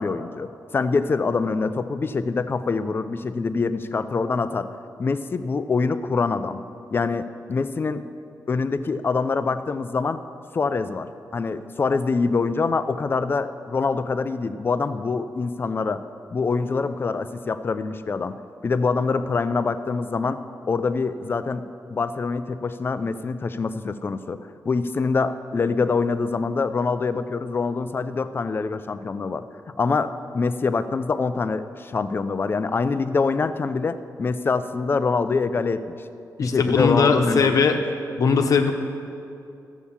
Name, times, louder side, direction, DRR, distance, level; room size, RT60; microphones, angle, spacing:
voice 1, 0.0-4.7 5.0-6.6 6.9-8.1 8.5-10.2 10.5-16.0 16.3-18.3 18.6-20.4 20.7-24.4 24.7-29.4 29.8-36.0 36.4-37.6, left 4 dB, 35° left, 11 dB, 0.5 m, -25 dB
voice 2, 36.4-37.8 38.2-38.7, left 5 dB, 60° left, 5 dB, 1.0 m, -19 dB
13.5 x 8.3 x 7.2 m, 2.6 s
wide cardioid pair, 160°, 7 cm